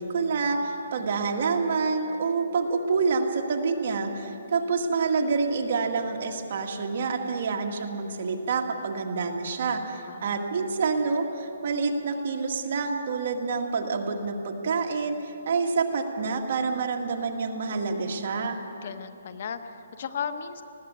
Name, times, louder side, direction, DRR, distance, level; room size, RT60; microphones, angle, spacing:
voice 1, 0.0-18.6, right 4 dB, 45° right, 2 dB, 1.9 m, -27 dB
voice 2, 10.1-10.4 18.8-20.6, left 7 dB, 45° left, 11 dB, 0.8 m, -36 dB
20.0 x 15.5 x 8.4 m, 3.0 s
hypercardioid pair, 170°, 0 cm